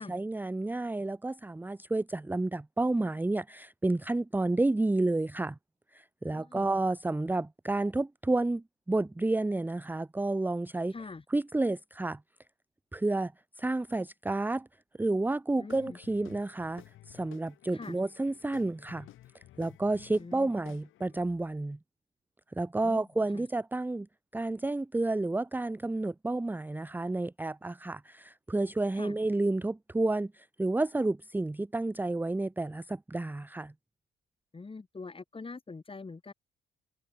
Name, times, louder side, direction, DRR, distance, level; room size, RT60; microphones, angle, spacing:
voice 1, 0.0-5.6 5.9-10.9 11.3-12.2 12.9-14.7 15.0-19.1 19.6-21.8 22.5-24.1 24.3-33.7, right 2 dB, 10° right, 0.7 m, -30 dB
voice 2, 6.2-6.7 10.9-11.2 15.6-16.0 17.7-18.0 20.2-20.5 22.8-23.1 23.3-23.5 29.0-29.2 34.5-36.3, left 4 dB, 25° left, 7.7 m, -44 dB
Guitar / Drum, 15.6-21.2, left 14 dB, 85° left, 6.5 m, -54 dB
cardioid pair, 90°, 20 cm